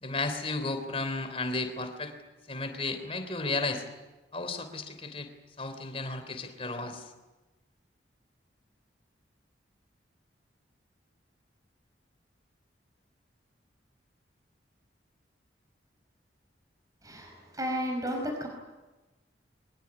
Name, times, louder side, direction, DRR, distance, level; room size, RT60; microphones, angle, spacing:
voice 1, 0.0-2.1 2.5-3.8 4.3-5.3 5.6-7.0, left 3 dB, 30° left, 8 dB, 3.3 m, -33 dB
voice 2, 17.0-18.5, equal, 20° right, 2 dB, 5.1 m, -33 dB
23.5 x 21.0 x 9.9 m, 1.1 s
head